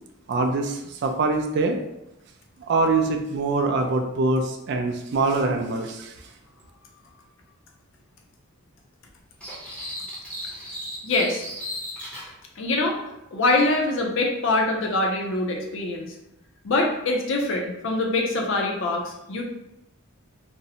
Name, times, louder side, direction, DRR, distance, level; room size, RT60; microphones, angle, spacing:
voice 1, 0.3-1.8 2.7-6.1, right 3 dB, 55° right, 4 dB, 0.3 m, -24 dB
sound 1, 9.4-12.3, equal, 5° left, 0.6 m, -35 dB
voice 2, 11.0-11.4 12.6-13.0 13.3-16.1 16.6-19.4, left 2 dB, 60° left, 1 dB, 0.5 m, -24 dB
2.6 x 2.0 x 2.7 m, 0.87 s
head